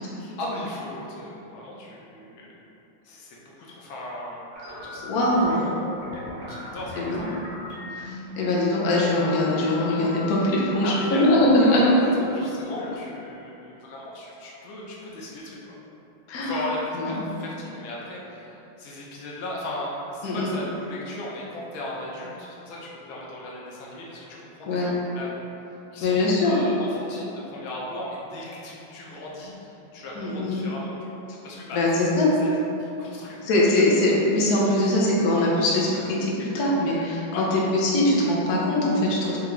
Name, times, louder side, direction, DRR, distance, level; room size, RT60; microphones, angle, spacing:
voice 1, 0.2-2.5 3.0-4.4 4.8-5.1 5.5-5.7 6.5-7.1 10.8-11.3 11.5-15.7 16.4-31.1 31.4-31.8 32.2-33.5 33.8-33.9 37.3-37.7, left 1 dB, 80° left, -4 dB, 1.4 m, -37 dB
sound 1, 4.5-13.4, left 2 dB, 50° right, 1.1 m, -39 dB
voice 2, 5.0-5.7 7.0-7.3 8.0-11.9 12.2-12.3 16.3-16.6 16.9-17.2 20.2-20.5 24.7-24.9 26.0-26.6 30.1-30.7 31.7-32.3 33.4-39.4, left 1 dB, 65° left, -5 dB, 1.0 m, -22 dB
3.7 x 3.4 x 3.1 m, 3.0 s
omnidirectional pair, 2.3 m